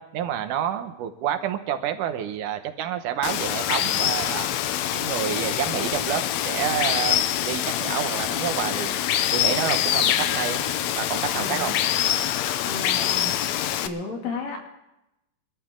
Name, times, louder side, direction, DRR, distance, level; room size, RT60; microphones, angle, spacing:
voice 1, 0.0-4.5 4.9-7.2 7.4-9.0 9.3-10.6 10.9-11.8, right 10 dB, 75° right, 8 dB, 2.5 m, -29 dB
Water, 3.2-13.9, left 11 dB, 75° left, 1.7 m, -25 dB
voice 2, 11.4-11.7 12.6-13.4 13.8-14.7, left 3 dB, 90° left, 1 dB, 4.2 m, -33 dB
24.0 x 13.5 x 3.7 m, 0.90 s
omnidirectional pair, 3.8 m